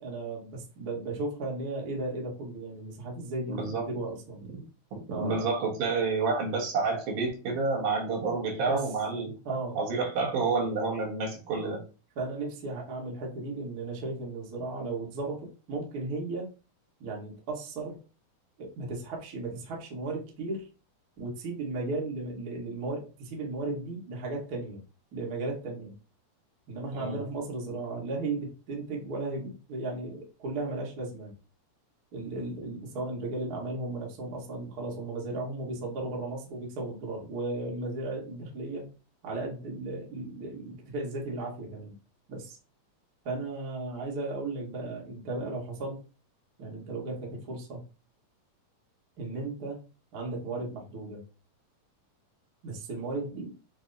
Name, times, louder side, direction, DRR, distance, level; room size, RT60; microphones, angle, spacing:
voice 1, 0.0-4.4 5.1-5.5 8.6-8.9 9.4-9.8 12.1-16.5 17.0-18.0 18.6-20.7 21.2-24.8 25.1-25.9 26.7-31.3 32.1-38.9 39.2-41.9 42.3-42.6 43.2-46.0 46.6-47.8 49.2-49.8 50.1-51.2 52.6-53.5, right 2 dB, 50° right, -2 dB, 1.1 m, -35 dB
voice 2, 3.5-3.8 4.9-9.3 9.7-11.8 26.9-27.2, right 4 dB, 75° right, -2 dB, 2.9 m, -29 dB
6.1 x 2.1 x 3.9 m, 0.34 s
omnidirectional pair, 3.7 m